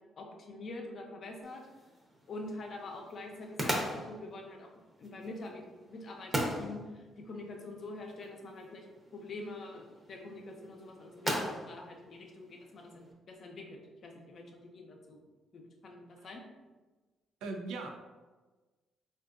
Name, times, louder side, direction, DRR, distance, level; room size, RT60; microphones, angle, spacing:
voice 1, 0.2-1.6 2.3-4.7 5.0-8.9 9.1-15.2 15.5-16.4, left 2 dB, 50° left, 2 dB, 0.6 m, -45 dB
sound 1, 1.4-13.1, equal, 20° right, 0.7 m, -40 dB
voice 2, 17.4-17.9, right 3 dB, 90° right, 3 dB, 0.4 m, -39 dB
3.5 x 2.5 x 2.4 m, 1.3 s
cardioid pair, 90°, 0 cm